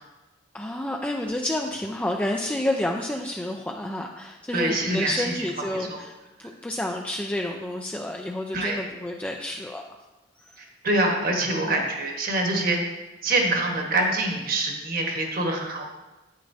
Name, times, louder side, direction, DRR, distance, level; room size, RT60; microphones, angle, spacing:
voice 1, 0.5-10.0 10.5-10.6 11.6-11.8, left 1 dB, 5° left, 1 dB, 0.4 m, -30 dB
voice 2, 4.5-5.5 5.9-6.0 8.5-8.8 10.6-12.8 13.2-15.8, right 2 dB, 50° right, 1 dB, 1.4 m, -25 dB
9.5 x 9.0 x 2.7 m, 1.1 s
head